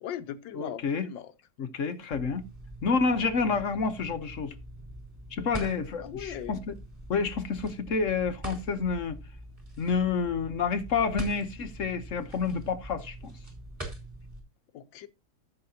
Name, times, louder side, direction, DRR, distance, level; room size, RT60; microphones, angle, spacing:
voice 1, 0.0-1.3 6.0-6.6 14.7-15.1, left 10 dB, 80° left, 1.5 m, -39 dB
voice 2, 0.5-1.1 1.6-2.4 2.8-4.5 5.3-6.7 7.1-9.2 9.8-13.3, left 5 dB, 50° left, 1.1 m, -29 dB
sound 1, 2.1-14.4, right 1 dB, 15° right, 3.3 m, -43 dB
14.5 x 6.6 x 2.8 m
omnidirectional pair, 2.0 m